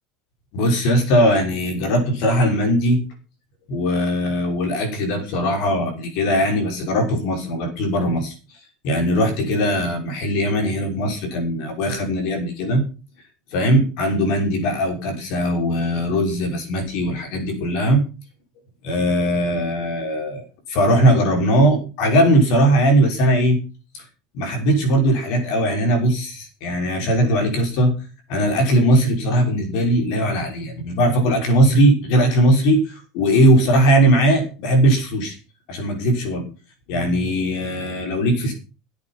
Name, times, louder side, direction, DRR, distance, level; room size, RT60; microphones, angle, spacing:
voice 1, 0.5-3.0 3.7-8.3 8.8-12.8 13.5-18.0 18.8-23.6 23.9-24.0 24.3-27.9 28.3-35.4 35.7-36.4 36.9-38.5, right 1 dB, 60° left, 4 dB, 6.1 m, -19 dB
16.5 x 8.7 x 6.0 m, 0.34 s
supercardioid pair, 150°, 0 cm